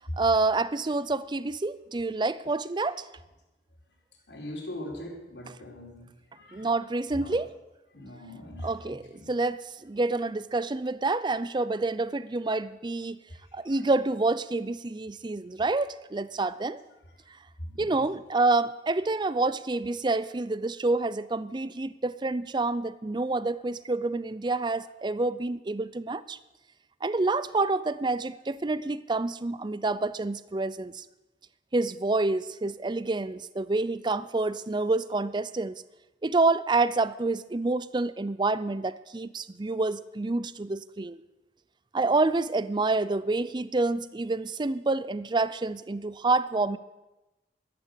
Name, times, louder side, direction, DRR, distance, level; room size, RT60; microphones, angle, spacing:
voice 1, 0.2-3.1 6.5-7.5 8.6-13.2 13.5-16.8 17.8-26.4 27.0-31.0 31.7-35.8 36.2-41.2 41.9-46.8, right 3 dB, 25° right, 16 dB, 0.5 m, -28 dB
voice 2, 4.3-6.1 6.3-6.7 7.1-7.4 7.9-9.3 13.3-13.8 17.6-18.0, left 1 dB, 80° left, -3 dB, 4.9 m, -41 dB
12.5 x 11.0 x 8.1 m, 1.0 s
head